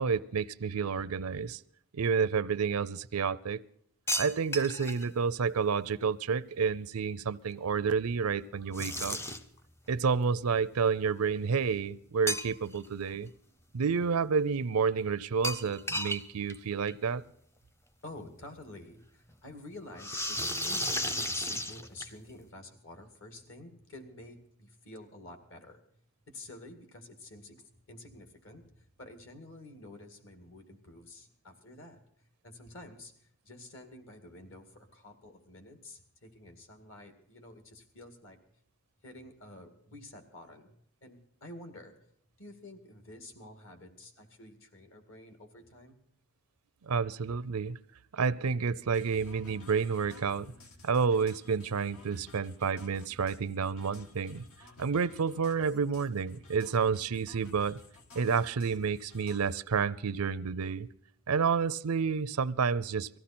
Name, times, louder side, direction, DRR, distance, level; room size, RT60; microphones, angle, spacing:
voice 1, 0.0-1.6 1.9-3.6 4.2-9.2 9.9-13.3 13.7-17.2 46.9-47.8 48.1-50.5 50.8-54.4 54.8-57.8 58.1-60.9 61.3-63.2, right 5 dB, 85° right, 0.5 m, -30 dB
sound 1, 4.1-5.1 8.7-9.6 12.3-12.9 13.2-13.3 15.4-16.2 16.5-16.6 16.9-17.0 18.2-18.3 20.0-22.3, equal, 10° left, 0.6 m, -33 dB
voice 2, 18.0-25.8 26.3-32.0 32.4-38.4 39.0-41.9 42.4-46.0, left 2 dB, 60° left, 2.2 m, -49 dB
sound 2, 48.9-59.6, left 2 dB, 75° left, 1.9 m, -54 dB
19.0 x 15.0 x 4.3 m
head